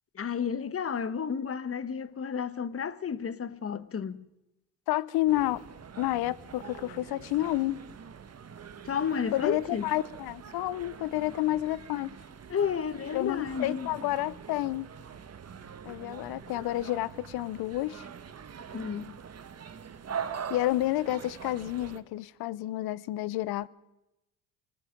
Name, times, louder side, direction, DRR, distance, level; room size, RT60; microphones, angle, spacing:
voice 1, 0.1-4.3 8.8-9.8 12.5-13.9 18.7-19.2, left 7 dB, 35° left, 1.3 m, -32 dB
voice 2, 4.9-5.6 6.0-7.8 9.3-12.2 13.1-14.9 15.8-18.1 20.5-23.7, left 16 dB, 70° left, 0.9 m, -30 dB
sound 1, 5.3-22.0, right 7 dB, 40° right, 1.7 m, -43 dB
25.0 x 20.0 x 5.3 m
supercardioid pair, 65°, 39 cm